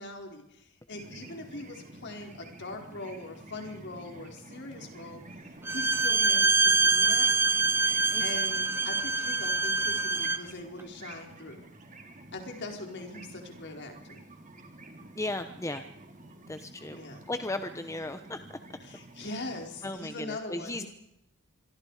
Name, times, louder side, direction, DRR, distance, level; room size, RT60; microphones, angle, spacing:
voice 1, 0.0-5.2 5.7-7.3 8.2-11.7 12.3-14.2 16.9-17.2 18.9-20.8, left 2 dB, 55° left, 3 dB, 4.8 m, -41 dB
sound 1, 0.9-19.9, right 1 dB, 35° right, 3.7 m, -49 dB
Bowed string instrument, 5.6-10.5, right 3 dB, 10° right, 0.7 m, -25 dB
voice 2, 15.2-15.8 16.5-17.0 17.3-18.6 19.2-19.4 19.8-20.8, left 2 dB, 15° left, 9 dB, 1.0 m, -36 dB
27.0 x 23.5 x 5.0 m, 0.82 s
head